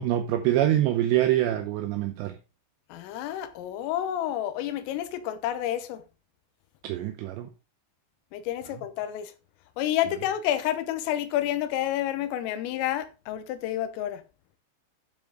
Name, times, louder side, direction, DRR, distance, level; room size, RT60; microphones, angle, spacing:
voice 1, 0.0-2.4 6.8-7.5, right 13 dB, 80° right, 2.6 m, -25 dB
voice 2, 2.9-6.0 8.3-9.3 9.8-14.2, left 12 dB, 90° left, 3.7 m, -29 dB
12.0 x 7.3 x 3.7 m
omnidirectional pair, 5.7 m